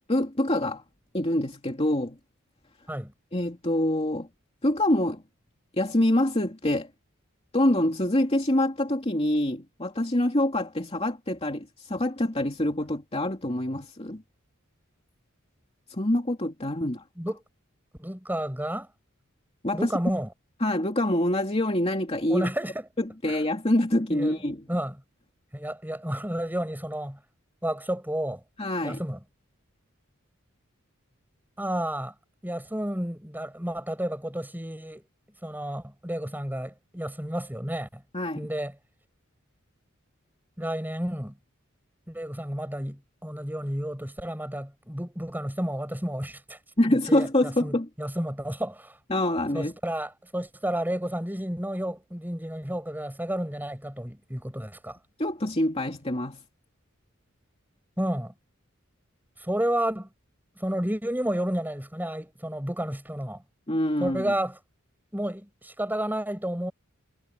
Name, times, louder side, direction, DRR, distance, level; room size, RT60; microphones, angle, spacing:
voice 1, 0.1-0.8 1.1-2.2 3.3-4.3 4.6-5.2 5.7-6.9 7.5-14.2 15.9-17.0 19.6-19.9 20.6-22.5 23.0-24.6 28.6-29.0 38.1-38.5 46.8-47.9 49.1-49.7 55.2-56.4 63.7-64.3, left 1 dB, 30° left, 2.7 m, -25 dB
voice 2, 18.0-18.9 19.7-20.3 22.3-22.9 23.3-23.4 24.1-24.4 24.7-25.0 25.5-27.2 27.6-28.4 28.8-29.2 31.6-32.1 32.4-35.0 35.4-38.0 38.4-38.7 40.6-41.4 42.1-46.6 46.9-49.0 49.5-55.0 58.0-58.3 59.4-60.1 60.6-63.4 64.0-64.6 65.1-66.7, right 1 dB, 10° right, 8.0 m, -31 dB
head